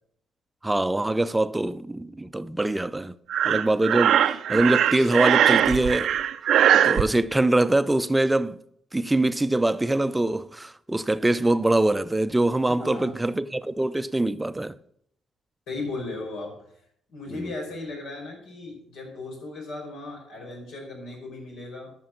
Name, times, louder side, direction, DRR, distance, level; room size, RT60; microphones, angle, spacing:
voice 1, 0.6-3.1 3.4-6.1 6.7-8.6 8.9-14.8 17.3-17.5, right 2 dB, 10° right, 0.5 m, -23 dB
Breathing, 3.3-7.0, right 10 dB, 75° right, 0.5 m, -20 dB
voice 2, 12.8-13.2 15.7-16.6 17.1-21.9, left 2 dB, 85° left, 5.1 m, -36 dB
12.5 x 6.0 x 5.8 m
cardioid pair, 90°, 0 cm